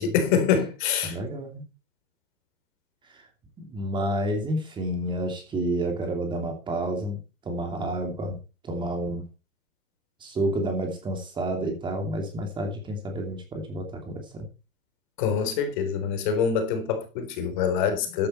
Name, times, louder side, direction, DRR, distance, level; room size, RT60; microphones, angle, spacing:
voice 1, 0.0-1.2 15.2-18.3, left 7 dB, 35° left, 3.8 m, -25 dB
voice 2, 1.0-1.6 3.1-3.2 3.6-7.2 7.4-8.4 8.6-9.3 10.2-14.5 18.1-18.2, right 1 dB, 10° right, 2.8 m, -30 dB
13.5 x 10.5 x 4.3 m
hypercardioid pair, 150°, 41 cm